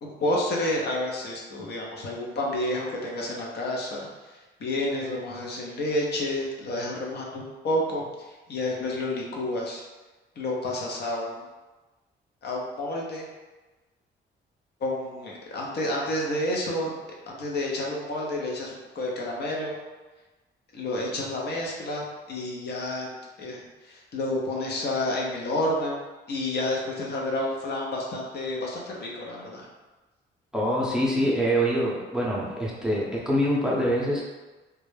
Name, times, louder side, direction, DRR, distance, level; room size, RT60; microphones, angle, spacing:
voice 1, 0.0-4.1 4.6-8.0 8.5-9.8 10.4-11.3 12.4-13.2 14.8-16.9 17.3-19.7 20.7-23.6 23.9-26.0 26.3-29.6, left 1 dB, 55° left, -2 dB, 0.6 m, -29 dB
voice 2, 30.5-34.2, equal, 5° right, -5 dB, 0.6 m, -25 dB
2.2 x 2.0 x 3.1 m, 1.2 s
cardioid pair, 90°, 20 cm